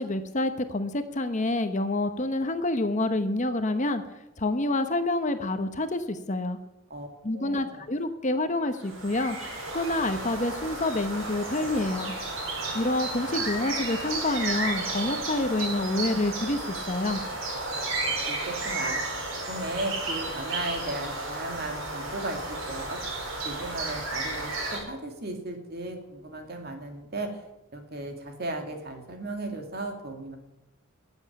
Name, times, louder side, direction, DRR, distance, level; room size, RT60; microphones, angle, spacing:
voice 1, 0.0-4.0 4.4-6.6 7.2-9.4 9.7-12.1 12.7-17.2, left 2 dB, 35° left, 9 dB, 1.0 m, -27 dB
voice 2, 7.3-7.8 18.0-19.0 19.5-23.0 23.4-27.3 27.7-30.4, right 2 dB, 50° right, 4 dB, 2.5 m, -36 dB
sound 1, 8.8-24.8, right 2 dB, 70° right, 5.2 m, -33 dB
14.0 x 8.1 x 9.4 m, 0.94 s
head